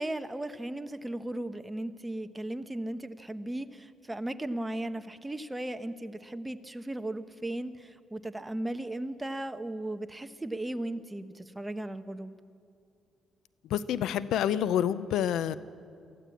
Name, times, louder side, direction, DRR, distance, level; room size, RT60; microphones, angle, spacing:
voice 1, 0.0-12.3, right 1 dB, 10° right, 9 dB, 1.0 m, -36 dB
voice 2, 13.7-15.6, left 10 dB, 80° left, 16 dB, 0.6 m, -28 dB
23.0 x 15.0 x 8.5 m, 2.4 s
cardioid pair, 90°, 0 cm